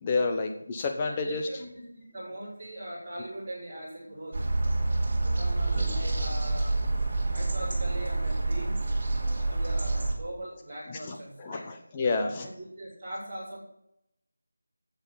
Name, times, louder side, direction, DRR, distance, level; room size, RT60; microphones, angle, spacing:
voice 1, 0.0-1.5 5.8-5.9 9.2-9.6 10.9-12.5, left 3 dB, 15° left, 4 dB, 0.8 m, -30 dB
voice 2, 1.0-4.5 5.3-6.7 7.3-8.8 9.5-11.7 12.4-13.6, right 1 dB, 10° right, -13 dB, 5.3 m, -40 dB
sound 1, 4.3-10.1, right 2 dB, 30° right, 2.8 m, -27 dB
9.4 x 8.1 x 8.5 m, 0.77 s
figure-of-eight pair, 180°, 0 cm